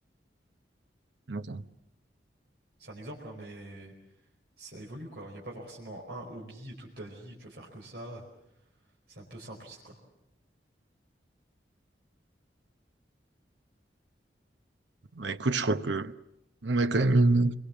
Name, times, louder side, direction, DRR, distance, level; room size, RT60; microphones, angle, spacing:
voice 1, 1.3-1.6 15.2-16.1 16.6-17.5, right 2 dB, 85° right, 1.0 m, -25 dB
voice 2, 2.8-3.9 4.6-8.2 9.1-10.0, right 1 dB, 65° right, 4.9 m, -44 dB
28.0 x 22.5 x 7.3 m
head